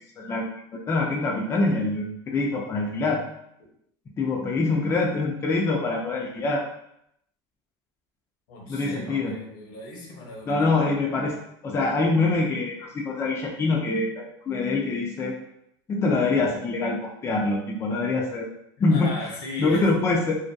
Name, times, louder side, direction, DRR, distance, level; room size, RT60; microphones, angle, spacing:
voice 1, 0.2-3.2 4.2-6.6 8.7-9.3 10.5-11.4 11.6-15.4 15.9-18.5 18.8-19.1 19.6-20.4, left 3 dB, 25° left, -1 dB, 0.4 m, -24 dB
voice 2, 8.5-10.7 18.9-20.1, left 2 dB, 75° left, -1 dB, 0.8 m, -37 dB
2.6 x 2.2 x 2.2 m, 0.75 s
supercardioid pair, 125°, 11 cm